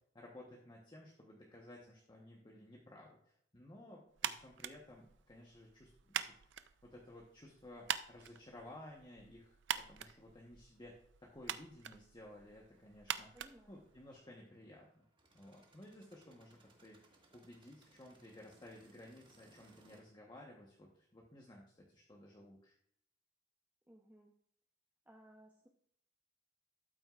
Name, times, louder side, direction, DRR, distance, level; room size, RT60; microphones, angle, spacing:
voice 1, 0.1-9.6 9.9-13.3 13.7-15.0 15.3-17.0 17.3-22.7, left 1 dB, 25° left, -2 dB, 1.1 m, -56 dB
sound 1, 4.2-14.4, right 9 dB, 70° right, 0.5 m, -45 dB
sound 2, 12.2-20.0, right 2 dB, 25° right, 1.5 m, -69 dB
voice 2, 13.3-13.9 23.9-24.4 25.1-25.7, right 1 dB, 10° right, 1 dB, 0.7 m, -61 dB
12.5 x 8.7 x 2.4 m, 0.70 s
head